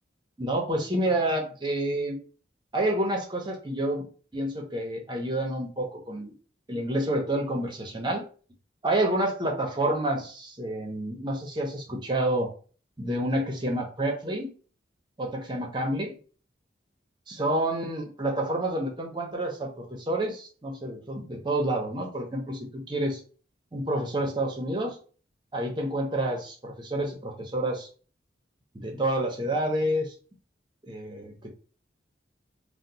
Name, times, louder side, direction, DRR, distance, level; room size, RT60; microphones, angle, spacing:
voice 1, 0.4-2.2 2.7-4.1 4.3-6.3 6.7-8.2 8.8-12.5 13.0-14.5 15.2-16.1 17.3-23.2 23.7-25.0 25.5-27.9 28.7-30.1 30.8-31.5, right 1 dB, 25° right, 1 dB, 0.6 m, -29 dB
2.8 x 2.0 x 3.8 m, 0.39 s
head